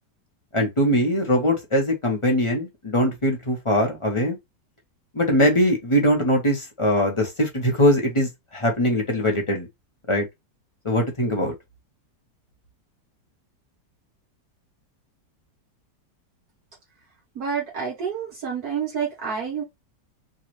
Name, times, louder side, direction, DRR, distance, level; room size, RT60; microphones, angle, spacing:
voice 1, 0.5-4.4 5.1-9.7 10.1-10.3 10.8-11.5, equal, 25° left, 0.8 m, -21 dB
voice 2, 17.3-19.6, right 6 dB, 65° right, 1.6 m, -28 dB
4.6 x 2.4 x 3.0 m
omnidirectional pair, 1.8 m